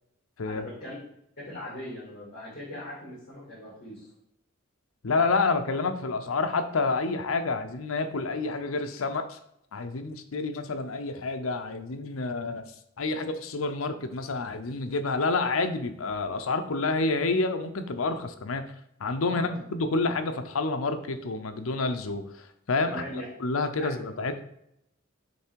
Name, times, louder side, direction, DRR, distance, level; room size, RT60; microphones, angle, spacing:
voice 1, 0.4-1.0 1.4-4.1 19.3-19.5 22.8-23.2 23.8-23.9, left 1 dB, 45° left, -9 dB, 2.5 m, -39 dB
voice 2, 5.0-9.4 9.7-12.7 13.0-18.6 19.0-23.0 23.4-24.4, left 3 dB, 85° left, 8 dB, 0.7 m, -28 dB
7.0 x 3.3 x 4.6 m, 0.77 s
head